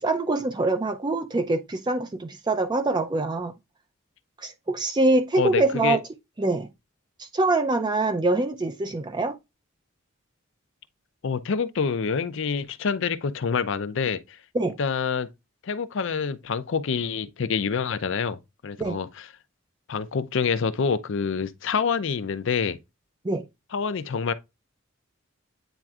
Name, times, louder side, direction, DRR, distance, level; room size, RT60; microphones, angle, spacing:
voice 1, 0.0-3.5 4.4-6.0 6.4-6.7 7.2-9.4 14.5-14.8 18.8-19.0 23.2-23.4, right 2 dB, 20° right, 0.4 m, -24 dB
voice 2, 5.4-6.0 11.2-14.2 14.8-15.3 15.6-18.4 18.6-19.3 19.9-22.8 23.7-24.3, left 5 dB, 65° left, 0.5 m, -26 dB
9.0 x 4.4 x 2.4 m
head